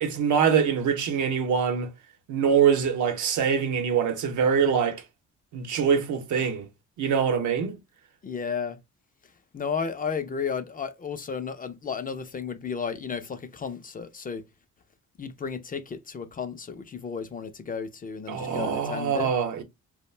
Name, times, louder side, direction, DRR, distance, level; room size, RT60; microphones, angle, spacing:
voice 1, 0.0-1.9 2.3-5.0 5.5-6.7 7.0-7.8 18.3-19.6, right 7 dB, 75° right, 0.8 m, -24 dB
voice 2, 8.2-8.8 9.5-14.5 15.2-19.3, left 6 dB, 30° left, 0.4 m, -33 dB
2.4 x 2.1 x 3.1 m
cardioid pair, 90°, 30 cm